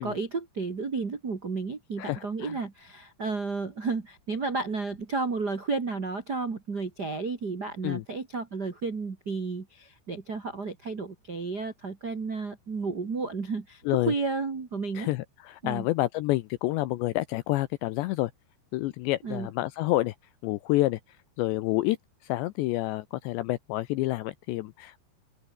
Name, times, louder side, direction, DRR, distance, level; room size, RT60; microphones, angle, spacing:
voice 1, 0.0-15.1 15.6-15.9 19.2-19.5, right 4 dB, 70° right, 0.9 m, -32 dB
voice 2, 2.0-2.6 7.8-8.0 13.9-14.1 14.9-18.3 18.7-20.2 20.4-21.0 21.4-22.0 22.2-25.0, left 17 dB, 80° left, 2.6 m, -28 dB
open air
omnidirectional pair, 5.8 m